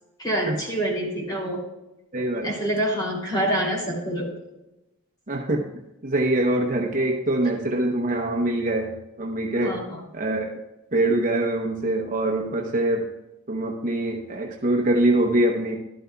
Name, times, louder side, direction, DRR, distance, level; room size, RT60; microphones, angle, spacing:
voice 1, 0.2-1.6 2.4-4.3 9.6-10.0, right 1 dB, 20° left, -2 dB, 2.8 m, -26 dB
voice 2, 2.1-2.5 5.3-5.7 6.0-9.8 10.1-10.5 10.9-13.1 13.5-15.8, right 1 dB, 35° right, 2 dB, 0.8 m, -24 dB
13.0 x 12.0 x 2.3 m, 0.94 s
head